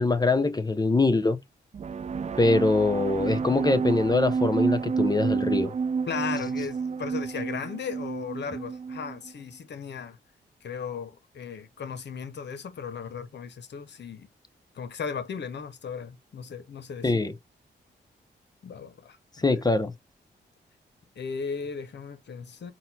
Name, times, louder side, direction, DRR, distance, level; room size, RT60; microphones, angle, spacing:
voice 1, 0.0-1.4 2.4-5.7 17.0-17.3 19.4-19.9, left 3 dB, 20° left, 0.8 m, -23 dB
sound 1, 1.7-9.3, right 5 dB, 35° right, 0.4 m, -29 dB
voice 2, 6.1-10.2 10.6-14.3 14.8-17.3 18.6-19.2 21.2-22.7, left 6 dB, 60° left, 0.8 m, -36 dB
4.1 x 2.2 x 4.1 m
supercardioid pair, 50°, 20 cm